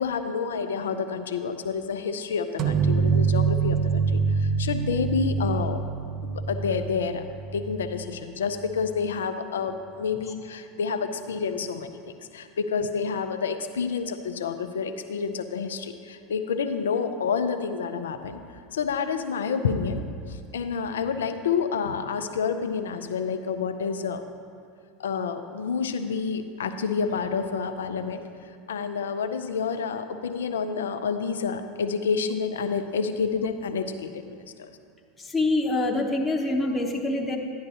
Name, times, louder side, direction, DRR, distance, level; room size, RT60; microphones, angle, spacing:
voice 1, 0.0-5.8 6.2-7.2 7.5-18.4 18.7-24.2 25.0-28.2 28.7-34.7, left 5 dB, 75° left, 8 dB, 0.5 m, -29 dB
sound 1, 2.6-8.1, right 5 dB, 45° right, 0.7 m, -25 dB
voice 2, 35.2-37.4, left 2 dB, 15° left, 0 dB, 0.9 m, -25 dB
11.0 x 10.5 x 2.8 m, 2.3 s
figure-of-eight pair, 80°, 0 cm